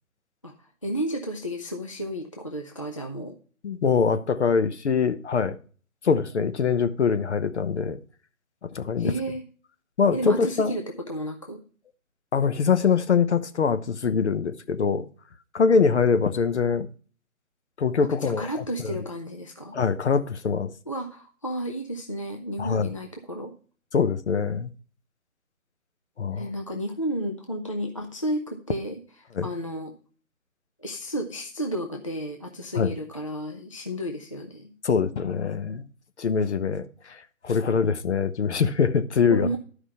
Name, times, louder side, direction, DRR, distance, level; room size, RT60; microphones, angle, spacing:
voice 1, 0.4-3.3 9.0-9.4 10.1-11.6 15.7-15.8 18.2-19.7 20.9-23.5 26.3-29.0 29.4-29.9 30.8-34.7 37.7-37.9 39.3-39.6, right 1 dB, 25° left, 0.5 m, -32 dB
voice 2, 3.6-5.6 6.0-8.0 8.6-9.1 10.0-10.8 12.3-15.1 15.5-16.9 17.8-18.4 18.8-18.9 19.7-20.7 22.6-22.9 23.9-24.7 26.2-26.5 29.3-29.5 32.8-32.9 34.8-35.8 36.2-39.5, left 6 dB, 50° left, 1.0 m, -23 dB
12.0 x 5.0 x 5.6 m
figure-of-eight pair, 155°, 42 cm